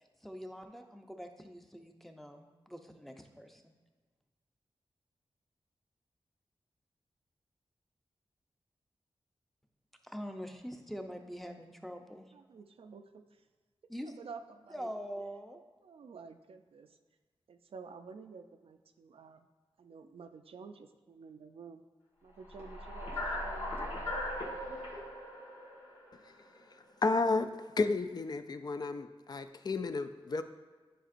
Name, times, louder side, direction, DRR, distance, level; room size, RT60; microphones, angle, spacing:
voice 1, 0.2-3.7 10.0-12.3 13.9-14.1 14.7-15.6, equal, ahead, 5 dB, 0.6 m, -44 dB
voice 2, 12.3-13.2 14.0-14.9 15.2-15.3 15.8-16.9 17.5-19.5 19.8-21.8 22.2-23.1 23.4-24.2, right 5 dB, 75° right, 7 dB, 0.4 m, -51 dB
sound 1, 22.4-26.7, left 1 dB, 90° left, 1.6 m, -39 dB
voice 3, 27.0-27.5 27.8-30.4, left 3 dB, 45° left, 9 dB, 0.4 m, -32 dB
10.0 x 5.0 x 2.5 m, 1.4 s
wide cardioid pair, 90°, 10 cm